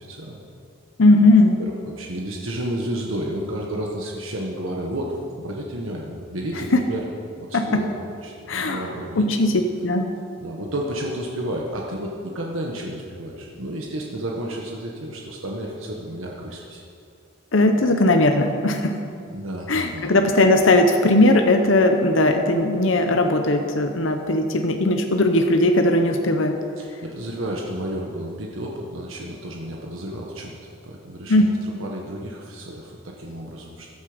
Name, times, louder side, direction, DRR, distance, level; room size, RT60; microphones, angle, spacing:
voice 1, 0.1-0.4 1.6-7.0 7.4-7.9 8.2-9.3 10.4-16.8 19.3-20.1 26.8-30.6 30.8-31.4 31.6-33.9, right 1 dB, 80° right, -1 dB, 1.5 m, -31 dB
voice 2, 1.0-1.6 6.7-6.8 7.5-7.8 8.5-8.9 9.1-9.5 9.8-10.1 17.5-19.0 19.7-26.6 31.3-31.5, left 2 dB, 70° left, 5 dB, 0.9 m, -18 dB
15.0 x 12.0 x 5.1 m, 2.4 s
head